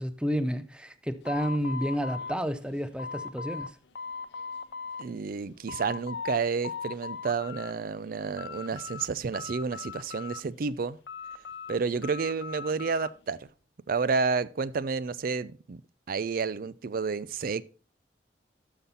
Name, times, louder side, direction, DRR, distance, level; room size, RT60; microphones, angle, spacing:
voice 1, 0.0-3.8, equal, 5° right, 0.6 m, -30 dB
sound 1, 1.2-3.7 4.0-5.0 5.4-6.4 6.6-7.7 8.1-9.1 9.3-10.6 11.1-13.1, left 5 dB, 75° left, 0.6 m, -39 dB
voice 2, 5.0-11.0 11.7-13.5 13.9-15.8 16.1-17.6, right 5 dB, 55° right, 0.4 m, -30 dB
12.5 x 5.8 x 4.0 m
head